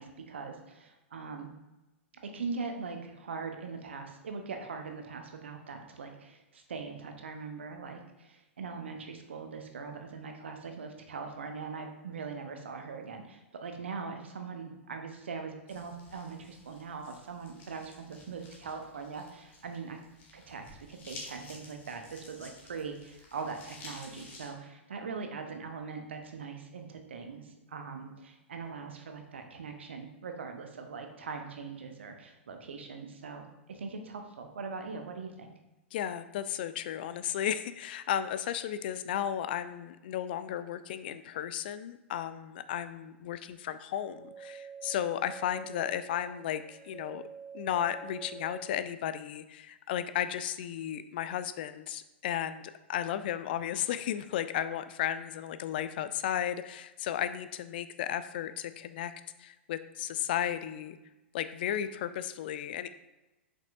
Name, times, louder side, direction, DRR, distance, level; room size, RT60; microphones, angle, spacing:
voice 1, 0.0-1.5 2.2-20.0 20.3-35.5, right 5 dB, 65° right, 5 dB, 1.0 m, -41 dB
sound 1, 15.7-24.5, left 2 dB, 30° left, 1.7 m, -52 dB
voice 2, 35.9-47.2 47.5-59.1 59.4-61.0 61.3-62.9, left 10 dB, 50° left, 12 dB, 0.4 m, -34 dB
sound 2, 44.0-48.9, right 7 dB, 20° right, 0.8 m, -47 dB
7.4 x 5.4 x 2.6 m, 1.0 s
figure-of-eight pair, 100°, 7 cm